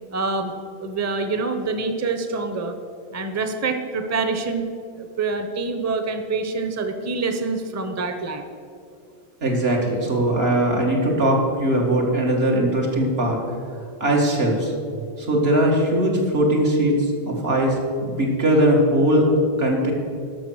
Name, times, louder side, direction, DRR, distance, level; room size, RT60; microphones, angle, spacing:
voice 1, 0.1-0.5 0.8-2.8 3.1-4.7 5.0-8.4, right 4 dB, 20° right, 7 dB, 0.6 m, -26 dB
voice 2, 9.4-13.4 14.0-14.7 15.2-19.3 19.6-19.9, right 1 dB, 75° right, -1 dB, 2.1 m, -20 dB
11.5 x 6.5 x 6.2 m, 2.4 s
omnidirectional pair, 1.0 m